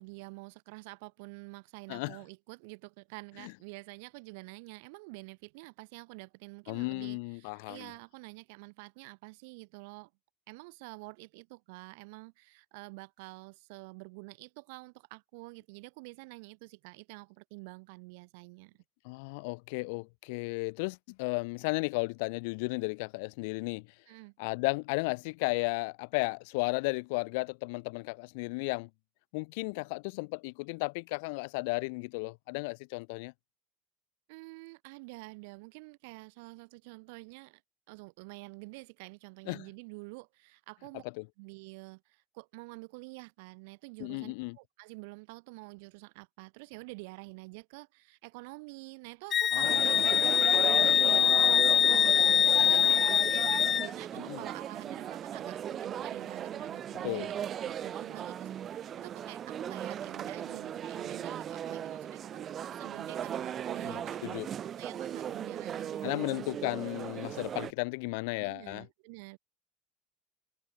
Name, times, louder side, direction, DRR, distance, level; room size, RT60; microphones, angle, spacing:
voice 1, 0.0-10.1 10.5-18.7 24.1-24.3 34.3-37.6 37.9-41.1 41.4-64.2 64.6-66.3 68.4-69.4, right 29 dB, 85° right, 5.5 m, -48 dB
voice 2, 6.7-7.9 19.0-23.9 24.4-28.9 29.3-33.3 39.5-39.6 41.2-41.3 44.0-44.6 49.5-50.2 54.2-54.4 57.0-57.3 63.9-64.5 66.0-68.9, left 29 dB, 80° left, 5.3 m, -34 dB
Wind instrument woodwind instrument, 49.3-53.9, left 9 dB, 30° left, 0.8 m, -24 dB
sound 1, 49.6-67.7, right 9 dB, 30° right, 6.8 m, -37 dB
cardioid pair, 165°, 0 cm